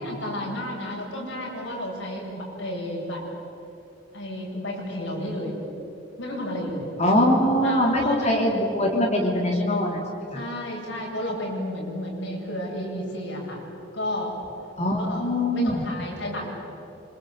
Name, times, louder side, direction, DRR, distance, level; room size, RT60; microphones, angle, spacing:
voice 1, 0.0-3.2 4.1-5.6 6.2-6.9 7.6-8.3 10.3-13.6 13.9-14.3 15.0-16.5, left 1 dB, 70° left, -2 dB, 8.0 m, -32 dB
voice 2, 7.0-10.4 14.8-15.8, left 1 dB, 35° left, 0 dB, 3.4 m, -22 dB
27.0 x 26.0 x 8.3 m, 2.9 s
head